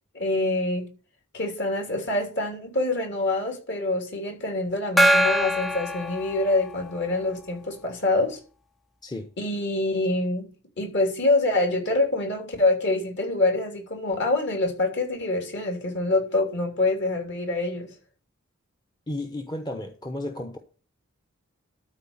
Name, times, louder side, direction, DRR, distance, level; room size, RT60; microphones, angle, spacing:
voice 1, 0.1-0.9 1.3-8.4 9.4-10.5 10.8-17.9, left 2 dB, 55° left, 3.4 m, -25 dB
Gong, 5.0-7.0, equal, ahead, 0.4 m, -23 dB
voice 2, 19.1-20.6, left 1 dB, 20° left, 0.8 m, -33 dB
12.5 x 4.3 x 7.1 m
head